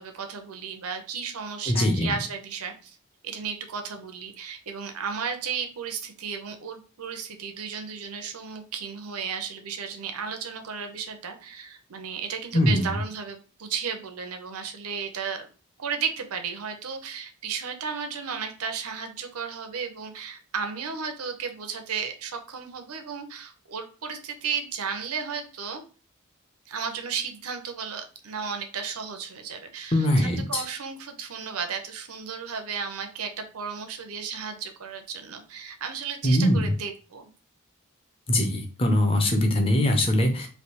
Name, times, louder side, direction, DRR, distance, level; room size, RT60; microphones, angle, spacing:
voice 1, 0.0-3.0 3.2-15.5 15.8-25.8 26.7-37.3, right 6 dB, 90° right, 6 dB, 0.7 m, -34 dB
voice 2, 1.7-2.1 12.5-12.9 29.9-30.6 36.2-36.7 38.3-40.5, left 1 dB, 25° left, 4 dB, 0.5 m, -22 dB
3.3 x 2.6 x 2.9 m, 0.36 s
head